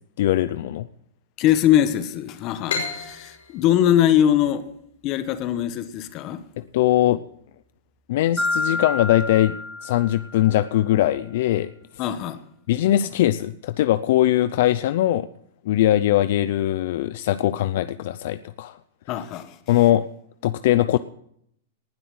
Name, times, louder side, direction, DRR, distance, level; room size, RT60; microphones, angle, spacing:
voice 1, 0.2-0.9 6.7-7.2 8.1-11.7 12.7-15.3 15.6-18.8 19.7-20.1 20.4-21.0, left 13 dB, 65° left, 0.6 m, -21 dB
voice 2, 1.4-4.7 5.0-6.4 12.0-12.4 19.1-19.6, left 11 dB, 40° left, 1.4 m, -21 dB
sound 1, 2.7-6.1, left 5 dB, 85° left, 5.1 m, -33 dB
Marimba xylophone, 8.4-10.6, left 3 dB, ahead, 2.0 m, -28 dB
19.5 x 8.0 x 7.9 m
hypercardioid pair, 140°, 0 cm